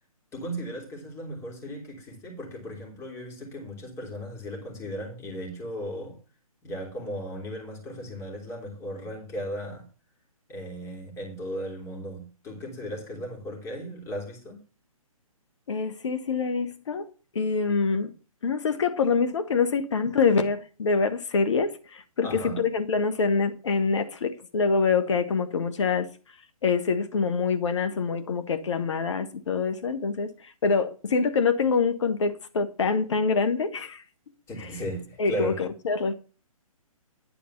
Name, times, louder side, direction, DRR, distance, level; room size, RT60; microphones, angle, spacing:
voice 1, 0.3-6.2 6.6-9.9 10.5-14.6 22.2-22.6 34.5-35.6, equal, 15° left, 3.3 m, -36 dB
voice 2, 15.7-17.1 17.3-18.1 18.4-26.1 26.6-34.0 34.6-34.7 35.2-36.1, left 5 dB, 55° left, 1.4 m, -25 dB
10.5 x 4.7 x 6.8 m
figure-of-eight pair, 130°, 19 cm